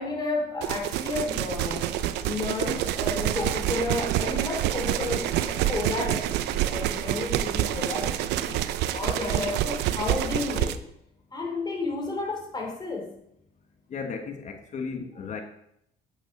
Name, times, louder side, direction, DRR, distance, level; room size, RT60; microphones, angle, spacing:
voice 1, 0.0-1.9 2.2-8.6 8.9-10.8 11.3-13.1, left 3 dB, 25° left, 1 dB, 3.3 m, -32 dB
sound 1, 0.6-10.8, right 12 dB, 85° right, 0.7 m, -27 dB
voice 2, 13.9-15.4, left 5 dB, 45° left, 5 dB, 1.4 m, -35 dB
9.3 x 8.2 x 5.3 m, 0.76 s
cardioid pair, 110°, 17 cm